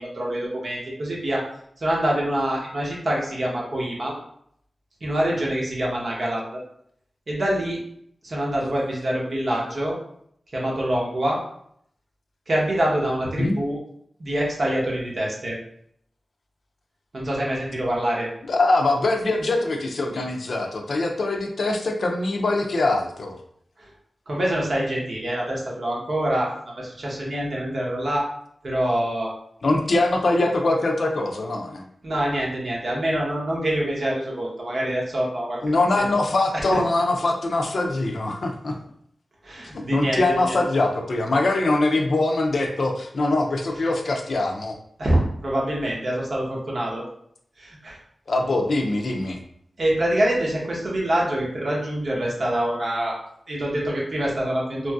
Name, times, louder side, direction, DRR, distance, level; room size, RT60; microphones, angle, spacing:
voice 1, 0.0-1.5 1.8-4.2 5.0-6.6 7.3-7.8 8.2-10.0 10.5-11.4 12.5-13.8 14.2-15.6 17.1-18.3 23.8-23.9 24.3-28.3 28.6-29.3 32.0-35.6 39.4-40.6 45.0-47.0 47.6-48.0 49.8-53.2 53.5-54.9, right 1 dB, 55° right, -3 dB, 0.8 m, -25 dB
voice 2, 18.5-23.4 29.6-31.8 35.6-38.8 39.9-44.7 48.3-49.4, left 2 dB, 70° left, 3 dB, 0.4 m, -23 dB
2.9 x 2.5 x 2.3 m, 0.68 s
wide cardioid pair, 100°, 0 cm